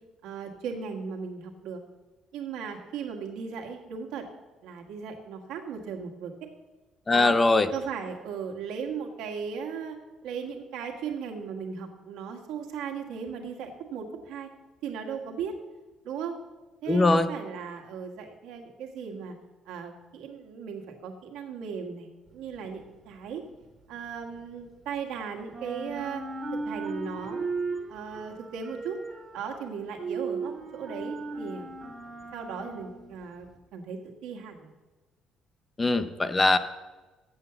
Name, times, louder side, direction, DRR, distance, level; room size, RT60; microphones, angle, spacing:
voice 1, 0.2-1.8 2.3-4.2 4.6-6.3 7.1-7.4 7.7-10.0 10.2-14.5 14.8-15.5 16.0-16.4 16.8-19.3 19.6-23.4 23.9-26.2 26.6-27.5 27.9-29.0 29.3-31.7 32.3-34.7, right 6 dB, 90° right, 2 dB, 1.4 m, -37 dB
voice 2, 7.1-7.7 16.9-17.3 35.8-36.6, left 2 dB, 15° left, 12 dB, 0.4 m, -21 dB
sound 1, 22.3-25.1 25.4-33.6, right 3 dB, 25° right, 0.9 m, -37 dB
7.9 x 6.7 x 6.9 m, 1.2 s
cardioid pair, 155°, 0 cm